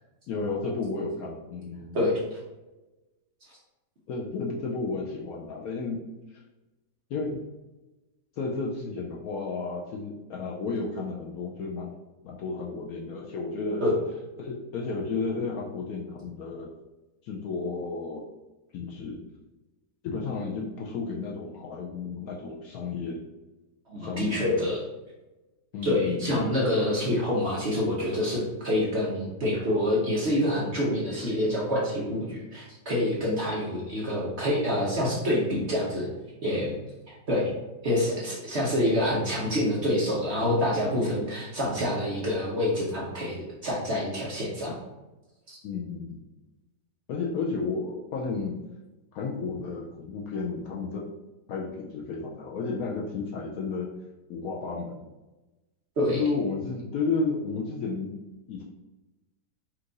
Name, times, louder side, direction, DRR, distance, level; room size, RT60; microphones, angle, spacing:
voice 1, 0.3-2.0 4.1-6.0 7.1-7.4 8.4-11.9 12.2-13.8 14.4-16.7 17.2-18.3 18.7-19.2 20.0-23.2 24.0-24.8 25.7-26.5 45.6-46.2 47.1-48.6 49.1-51.1 51.5-53.9 54.3-55.1 56.1-58.1 58.5-58.6, left 4 dB, 70° left, -2 dB, 0.9 m, -32 dB
voice 2, 23.9-24.8 25.8-36.1 36.4-36.8 37.3-37.5 37.8-44.8 45.5-45.6 56.0-56.2, left 1 dB, 50° right, -4 dB, 0.9 m, -27 dB
4.5 x 2.5 x 3.8 m, 1.1 s
omnidirectional pair, 1.9 m